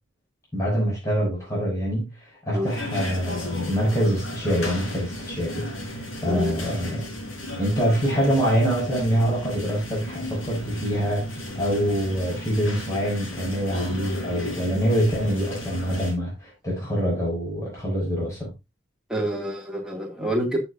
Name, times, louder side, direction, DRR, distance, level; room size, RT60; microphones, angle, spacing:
voice 1, 0.5-2.1 2.5-7.0 7.6-18.5, equal, 15° left, 6.3 m, -25 dB
sound 1, 2.6-16.1, left 1 dB, 80° left, 4.2 m, -34 dB
voice 2, 19.1-20.6, right 1 dB, 5° right, 2.3 m, -27 dB
13.5 x 7.3 x 2.6 m
head